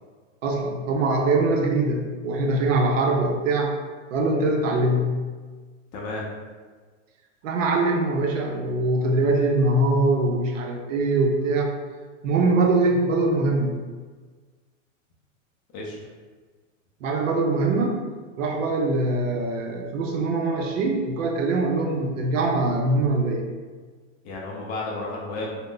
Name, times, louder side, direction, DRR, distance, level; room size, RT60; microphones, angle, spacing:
voice 1, 0.4-3.7 4.1-5.2 7.4-11.7 12.2-13.8 17.0-18.0 18.3-23.4, right 2 dB, 85° right, 2 dB, 0.6 m, -23 dB
voice 2, 5.9-6.2 15.7-16.0 24.2-25.6, left 2 dB, 25° left, -3 dB, 0.4 m, -32 dB
2.4 x 2.1 x 3.7 m, 1.4 s
supercardioid pair, 135°, 37 cm